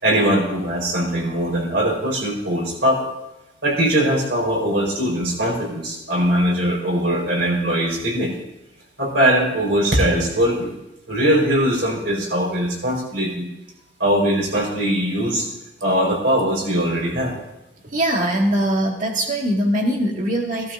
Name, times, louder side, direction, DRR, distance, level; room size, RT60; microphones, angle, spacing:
voice 1, 0.0-3.1 3.6-8.3 9.0-10.7 11.1-13.5 14.0-15.5 15.8-17.3, right 1 dB, 70° right, -2 dB, 4.5 m, -21 dB
voice 2, 17.8-20.7, right 1 dB, 45° right, 0 dB, 2.0 m, -21 dB
16.5 x 12.5 x 2.6 m, 0.93 s
head